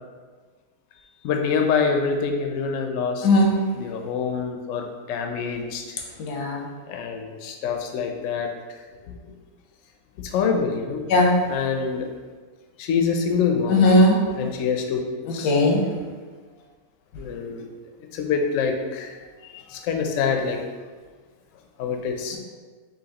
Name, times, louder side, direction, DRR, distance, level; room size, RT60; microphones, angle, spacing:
voice 1, 1.2-3.3 3.8-5.8 6.9-8.5 9.0-9.1 10.2-11.0 11.5-12.1 12.8-13.8 14.4-15.0 15.3-15.5 17.2-17.6 18.1-19.2 19.5-20.6 21.8-22.4, left 6 dB, 70° left, 3 dB, 0.8 m, -25 dB
voice 2, 6.2-6.6 11.1-11.3 13.7-14.2 15.4-15.8, left 1 dB, 90° left, 0 dB, 1.3 m, -17 dB
5.7 x 2.6 x 2.9 m, 1.4 s
omnidirectional pair, 1.7 m